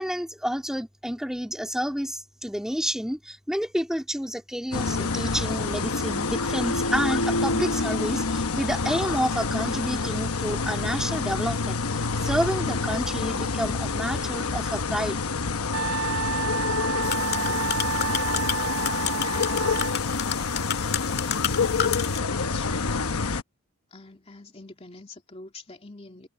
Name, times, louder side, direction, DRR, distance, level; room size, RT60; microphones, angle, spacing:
voice 1, 0.0-15.2, equal, ahead, 3.1 m, -29 dB
sound 1, 4.7-23.4, left 4 dB, 80° left, 1.0 m, -27 dB
Wind instrument woodwind instrument, 15.7-19.9, right 6 dB, 75° right, 4.0 m, -30 dB
sound 2, 17.0-22.2, left 9 dB, 45° left, 2.0 m, -31 dB
voice 2, 21.1-21.6 22.3-23.0 23.9-26.3, left 3 dB, 25° left, 2.9 m, -45 dB
head